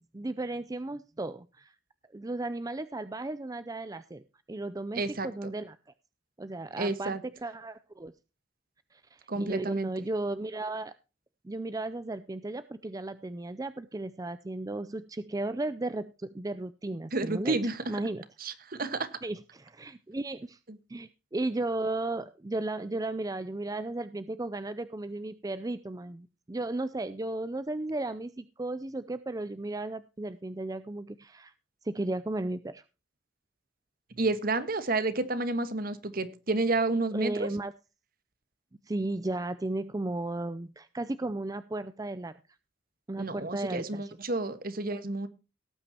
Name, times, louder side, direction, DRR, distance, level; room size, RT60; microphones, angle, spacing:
voice 1, 0.1-1.7 2.1-4.2 4.5-5.8 6.4-8.1 8.9-10.9 11.4-17.6 17.9-18.3 19.2-20.6 20.9-31.5 31.8-32.8 37.1-37.7 38.9-42.3 43.1-44.2, right 2 dB, 20° right, 13 dB, 0.5 m, -35 dB
voice 2, 4.9-5.5 6.8-7.2 9.3-9.9 17.1-17.9 18.4-19.1 20.7-20.8 34.2-37.5 43.2-45.3, right 2 dB, 50° right, 12 dB, 1.4 m, -30 dB
18.0 x 8.9 x 2.8 m, 0.30 s
head